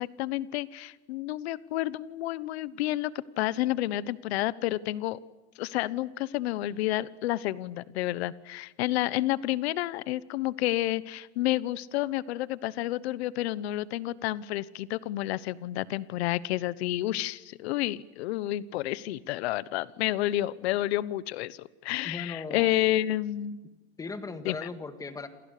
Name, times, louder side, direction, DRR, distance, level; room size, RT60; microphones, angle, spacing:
voice 1, 0.0-5.2 5.6-23.6 24.4-24.7, left 15 dB, 70° left, 18 dB, 1.1 m, -30 dB
voice 2, 22.0-22.7 24.0-25.3, left 4 dB, 10° left, 9 dB, 1.8 m, -37 dB
29.5 x 28.5 x 6.8 m, 1.1 s
supercardioid pair, 165°, 33 cm